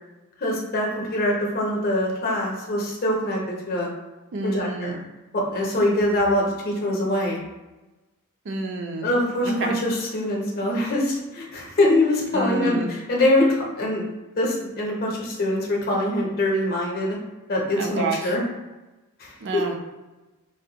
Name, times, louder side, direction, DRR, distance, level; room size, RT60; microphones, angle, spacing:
voice 1, 0.4-3.9 4.4-5.0 5.3-7.4 9.0-14.1 14.4-17.2 17.5-18.4 19.2-19.6, left 1 dB, 45° left, -2 dB, 0.6 m, -23 dB
voice 2, 4.3-5.0 8.4-9.1 9.4-9.8 12.3-12.9 17.8-18.4 19.4-19.8, right 3 dB, 55° right, 3 dB, 0.4 m, -29 dB
3.3 x 2.1 x 2.8 m, 1.1 s
head